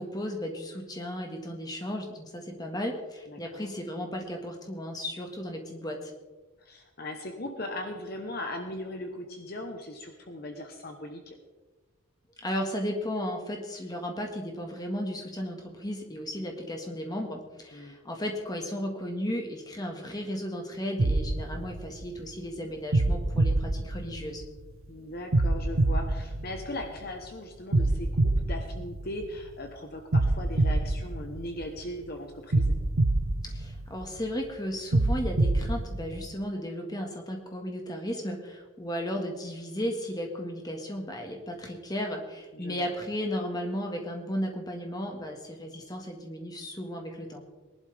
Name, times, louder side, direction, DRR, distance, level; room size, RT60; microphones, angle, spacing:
voice 1, 0.0-6.1 12.4-24.4 33.4-47.4, equal, 20° left, 2 dB, 1.7 m, -35 dB
voice 2, 3.3-3.7 6.6-11.3 17.7-17.9 24.9-32.7 42.5-43.0, left 1 dB, 45° left, 4 dB, 1.1 m, -39 dB
sound 1, 21.0-22.3 22.9-24.6 25.3-27.1 27.7-29.5 30.1-31.9 32.5-34.2 34.9-36.3, right 2 dB, 75° right, 0.8 m, -26 dB
20.5 x 11.5 x 3.5 m, 1.3 s
head